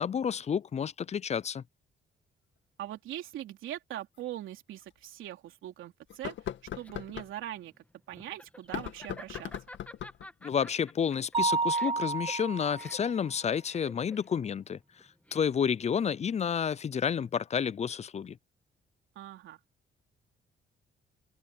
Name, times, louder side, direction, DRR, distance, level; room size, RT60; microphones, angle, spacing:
voice 1, 0.0-1.6 10.4-18.4, left 7 dB, 35° left, 0.5 m, -30 dB
voice 2, 2.8-6.3 6.7-7.7 8.1-9.5 19.1-19.6, right 13 dB, 85° right, 3.4 m, -41 dB
sound 1, 4.2-4.3 4.8-4.9 6.1-7.3 8.6-10.3, left 10 dB, 70° left, 2.2 m, -39 dB
Laughter, 6.4-15.8, left 1 dB, 5° left, 2.0 m, -51 dB
Mallet percussion, 11.3-13.1, right 4 dB, 25° right, 0.7 m, -30 dB
open air
cardioid pair, 90°, 20 cm